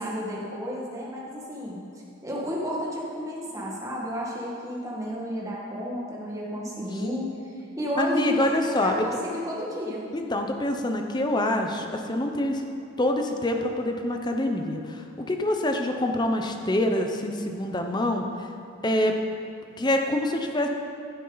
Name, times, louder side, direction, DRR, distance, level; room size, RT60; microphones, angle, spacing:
voice 1, 0.0-1.8 2.2-10.0, equal, 15° right, -5 dB, 1.7 m, -32 dB
voice 2, 8.0-9.1 10.1-12.7 13.0-18.2 18.8-19.1 19.8-20.7, left 1 dB, 20° left, 4 dB, 0.7 m, -26 dB
15.0 x 7.2 x 4.0 m, 2.5 s
head